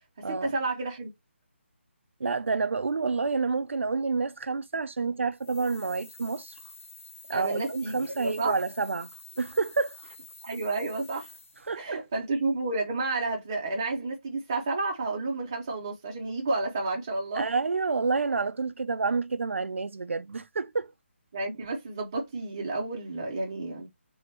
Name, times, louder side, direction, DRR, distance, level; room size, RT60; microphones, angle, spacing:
voice 1, 0.3-1.1 7.3-8.6 10.4-11.3 11.8-17.4 21.3-23.9, right 3 dB, 15° right, 0.7 m, -31 dB
voice 2, 2.2-6.5 7.3-9.1 9.4-10.0 11.7-12.0 17.4-20.9, right 4 dB, 70° right, 0.5 m, -29 dB
sound 1, 5.4-11.8, left 3 dB, 85° left, 1.2 m, -49 dB
3.4 x 3.0 x 3.2 m
hypercardioid pair, 180°, 7 cm